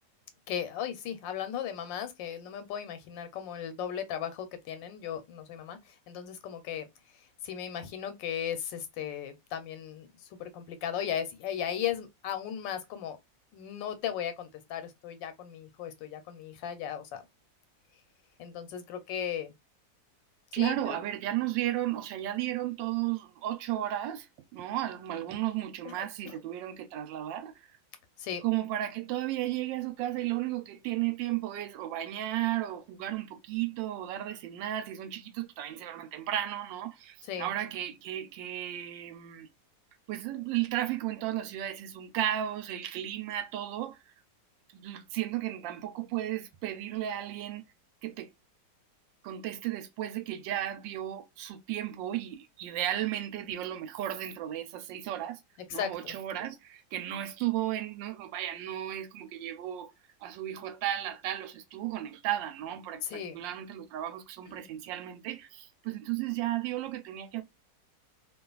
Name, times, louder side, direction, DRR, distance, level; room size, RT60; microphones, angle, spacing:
voice 1, 0.5-6.9 7.4-13.2 13.5-17.2 18.4-19.5 20.6-21.0 25.8-26.4 28.2-28.4 37.3-37.5 55.7-56.2 63.0-63.4 64.5-64.7, left 9 dB, 90° left, 1.4 m, -36 dB
voice 2, 20.5-27.7 28.4-39.5 40.1-44.0 44.7-47.6 48.0-48.3 49.2-55.4 55.7-59.9 60.2-67.4, right 13 dB, 90° right, 1.3 m, -34 dB
2.9 x 2.4 x 2.3 m
omnidirectional pair, 1.9 m